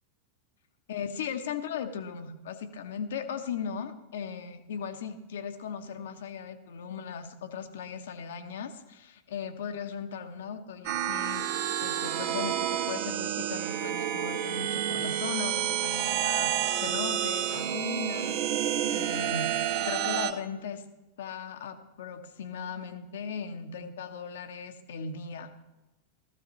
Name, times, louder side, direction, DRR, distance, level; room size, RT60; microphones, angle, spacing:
voice 1, 0.9-19.5 19.8-20.8 21.2-25.5, left 6 dB, 60° left, 9 dB, 1.1 m, -38 dB
sound 1, 10.8-20.3, right 11 dB, 45° right, 0.9 m, -29 dB
16.0 x 14.0 x 3.2 m, 1.0 s
figure-of-eight pair, 90°, 0 cm